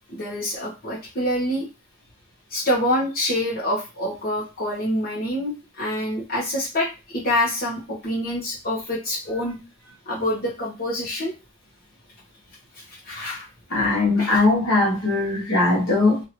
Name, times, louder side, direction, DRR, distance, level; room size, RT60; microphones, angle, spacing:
voice 1, 0.1-1.7 2.5-9.6 10.1-11.3 12.7-13.4 14.2-14.4, left 1 dB, 40° left, -7 dB, 1.0 m, -26 dB
voice 2, 13.7-16.2, left 2 dB, 60° left, -4 dB, 1.3 m, -20 dB
2.8 x 2.6 x 3.0 m, 0.29 s
head